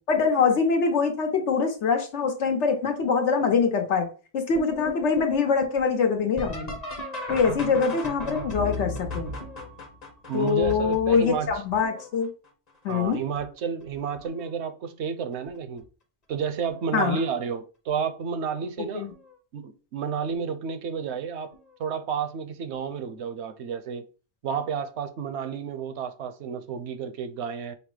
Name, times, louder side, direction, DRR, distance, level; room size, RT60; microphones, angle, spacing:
voice 1, 0.1-4.1 4.3-6.7 7.3-9.3 10.3-12.3 12.8-13.2 16.9-17.2 18.9-19.1, left 5 dB, 85° left, 1.3 m, -24 dB
sound 1, 4.5-12.2 12.9-13.4 13.9-14.5 15.8-15.9 16.6-16.9 19.1-19.2 21.5-21.6, left 2 dB, 40° left, 0.9 m, -36 dB
voice 2, 10.3-11.5 12.9-15.8 16.3-19.1 19.5-21.5 21.8-24.1 24.4-27.8, right 6 dB, 75° right, 0.9 m, -31 dB
5.6 x 2.0 x 4.7 m
omnidirectional pair, 1.2 m